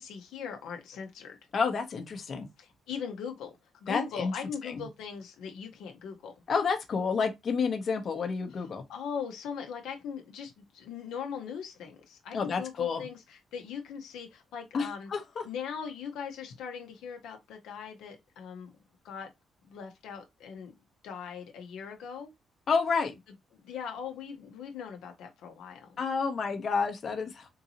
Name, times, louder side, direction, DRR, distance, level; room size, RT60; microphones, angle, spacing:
voice 1, 0.0-1.4 2.6-6.3 8.9-15.1 15.4-18.7 19.0-19.3 19.7-20.8 21.0-22.3 23.5-26.0, left 7 dB, 85° left, 0.7 m, -40 dB
voice 2, 1.5-2.5 3.9-4.3 4.6-4.8 6.5-8.8 12.3-13.0 14.7-15.4 22.7-23.1 26.0-27.5, left 5 dB, 50° left, 0.8 m, -30 dB
3.8 x 2.7 x 2.7 m
cardioid pair, 90°, 0 cm